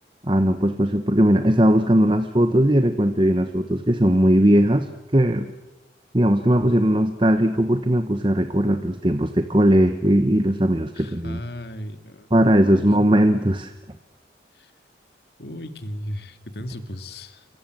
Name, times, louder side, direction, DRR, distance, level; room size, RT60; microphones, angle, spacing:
voice 1, 0.2-5.5 6.1-11.4 12.3-13.7, right 1 dB, 25° right, 8 dB, 1.1 m, -19 dB
voice 2, 10.9-12.3 12.8-12.9 14.5-14.7 15.4-17.5, equal, 60° left, 9 dB, 2.3 m, -36 dB
29.5 x 25.5 x 7.8 m, 1.0 s
head